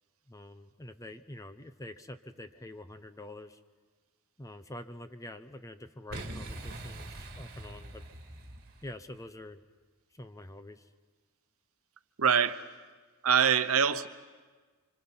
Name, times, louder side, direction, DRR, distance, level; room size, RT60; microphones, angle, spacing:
voice 1, 0.3-3.6 4.4-8.0 8.8-9.6 10.1-10.9, left 1 dB, 15° left, 10 dB, 0.7 m, -46 dB
Boom, 6.1-9.1, right 1 dB, 45° right, 2.0 m, -43 dB
voice 2, 12.2-12.6 13.2-14.1, right 7 dB, 70° right, 11 dB, 0.9 m, -24 dB
29.0 x 25.5 x 5.6 m, 1.4 s
head